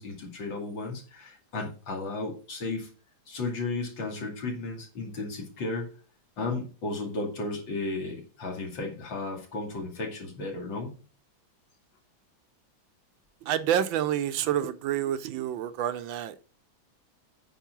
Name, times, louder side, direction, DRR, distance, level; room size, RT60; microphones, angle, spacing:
voice 1, 0.0-2.9 3.3-5.9 6.4-11.0, left 3 dB, 70° left, 3.2 m, -34 dB
voice 2, 13.4-16.4, right 10 dB, 75° right, 1.4 m, -28 dB
9.2 x 4.5 x 6.1 m
omnidirectional pair, 2.2 m